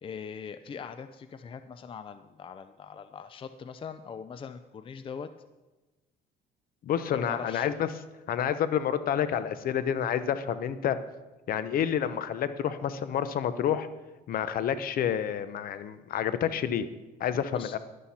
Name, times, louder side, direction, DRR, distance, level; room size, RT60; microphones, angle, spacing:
voice 1, 0.0-5.3 7.1-7.7 17.5-17.8, left 6 dB, 30° left, 10 dB, 0.5 m, -41 dB
voice 2, 6.8-7.9 8.3-11.0 11.5-13.9 14.3-16.9 17.2-17.8, left 9 dB, 60° left, 12 dB, 0.8 m, -29 dB
11.5 x 11.0 x 4.3 m, 1.1 s
cardioid pair, 110°, 17 cm